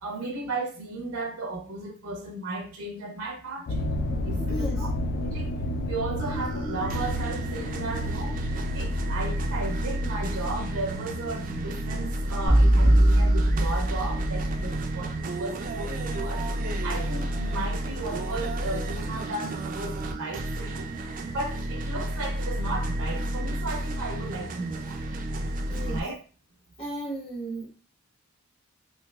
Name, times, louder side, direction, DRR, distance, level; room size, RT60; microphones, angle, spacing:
voice 1, 0.0-3.9 4.2-4.9 5.2-5.5 5.8-8.4 8.7-16.4 16.8-20.9 21.3-25.0 25.9-26.2, right 2 dB, 80° right, 0.6 m, -35 dB
sound 1, 3.7-15.9 16.5-16.9 17.5-17.6 17.9-18.0, left 1 dB, 45° left, 0.3 m, -33 dB
voice 2, 4.1-4.9 25.7-26.1 26.8-27.7, right 1 dB, 25° left, 0.8 m, -35 dB
sound 2, 6.2-26.0, right 1 dB, 40° right, 0.3 m, -31 dB
sound 3, 12.5-14.7, right 1 dB, 80° left, 1.0 m, -20 dB
3.2 x 2.8 x 2.3 m
head